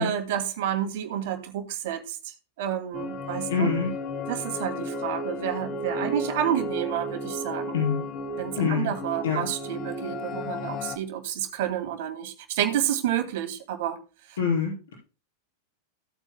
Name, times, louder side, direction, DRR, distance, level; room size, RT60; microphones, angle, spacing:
voice 1, 0.0-3.7 4.3-7.8 8.4-14.0, right 10 dB, 50° right, 2.4 m, -30 dB
sound 1, 2.9-11.0, left 2 dB, 35° left, 1.4 m, -33 dB
voice 2, 3.5-3.9 7.7-8.0 8.6-8.9 9.2-9.5 14.4-14.9, left 6 dB, 60° left, 5.4 m, -25 dB
16.5 x 8.3 x 2.2 m
figure-of-eight pair, 90°, 0 cm